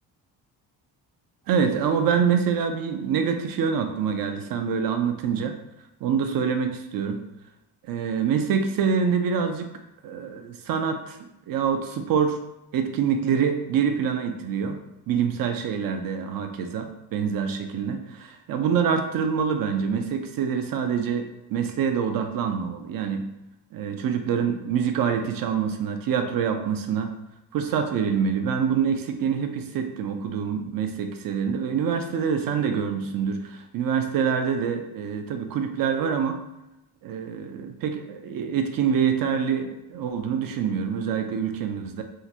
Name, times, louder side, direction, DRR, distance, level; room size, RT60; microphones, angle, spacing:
voice 1, 1.5-5.6 6.0-7.3 7.8-9.7 10.0-11.2 11.5-12.4 12.7-23.3 23.7-27.2 27.5-36.4 37.0-42.0, right 7 dB, 55° right, 6 dB, 0.5 m, -26 dB
3.7 x 2.1 x 2.7 m, 0.91 s
cardioid pair, 85°, 40 cm